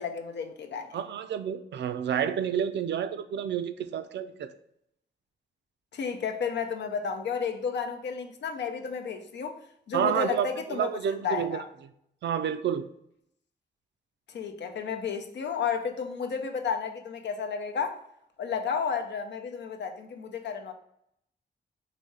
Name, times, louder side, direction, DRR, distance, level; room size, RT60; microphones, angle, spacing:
voice 1, 0.0-1.0 5.9-9.6 9.9-10.9 11.2-11.6 14.3-18.0 18.4-20.7, left 6 dB, 85° left, 0.6 m, -32 dB
voice 2, 0.9-4.5 9.9-11.6 12.2-12.9, right 8 dB, 85° right, 0.4 m, -29 dB
4.2 x 2.7 x 4.7 m
wide cardioid pair, 125°, 18 cm